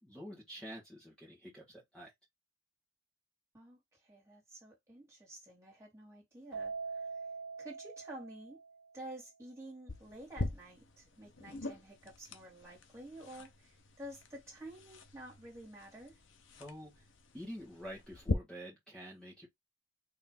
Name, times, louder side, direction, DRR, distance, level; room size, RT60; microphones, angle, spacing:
voice 1, 0.0-2.1 16.6-17.1 17.3-19.5, equal, 5° left, 1.6 m, -48 dB
voice 2, 3.5-7.1 7.6-8.6 8.9-16.2, right 1 dB, 15° right, 2.3 m, -50 dB
Keyboard (musical), 6.5-9.0, right 4 dB, 85° right, 1.3 m, -43 dB
sound 1, 9.9-18.3, left 2 dB, 70° left, 0.8 m, -43 dB
4.4 x 3.2 x 3.7 m
head